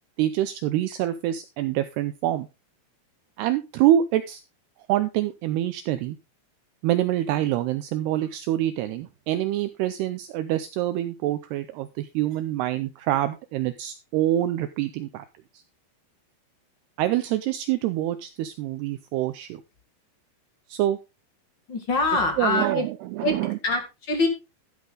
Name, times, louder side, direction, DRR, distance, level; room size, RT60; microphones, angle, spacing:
voice 1, 0.2-2.5 3.4-4.4 4.9-6.2 6.8-15.3 15.5-15.6 17.0-19.6 20.7-21.0 22.4-23.6, right 13 dB, 85° right, 11 dB, 2.3 m, -26 dB
voice 2, 21.7-22.9 23.2-23.4 23.6-24.3, left 2 dB, 40° left, 5 dB, 1.6 m, -24 dB
12.5 x 8.2 x 3.8 m, 0.27 s
omnidirectional pair, 5.4 m